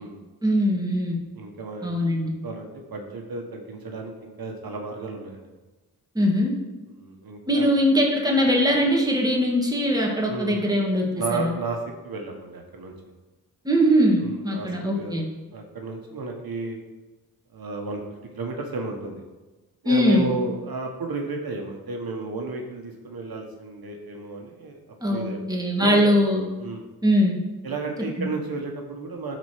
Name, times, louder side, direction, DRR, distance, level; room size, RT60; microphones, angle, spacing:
voice 1, 0.4-1.2 1.8-2.3 6.2-6.5 7.5-11.6 13.6-15.3 19.9-20.3 25.0-26.5 27.0-27.4 28.2-28.3, equal, 10° right, -1 dB, 1.9 m, -21 dB
voice 2, 1.3-1.9 2.4-5.5 6.9-7.7 10.3-10.7 11.2-11.8 12.0-12.9 14.2-14.7 15.0-15.2 15.5-16.8 17.5-18.0 18.3-19.2 19.8-24.8 25.1-25.4 25.8-26.1 26.6-26.8 27.6-29.4, right 3 dB, 70° right, 2 dB, 1.4 m, -33 dB
12.0 x 4.4 x 5.0 m, 1.2 s
wide cardioid pair, 85°, 37 cm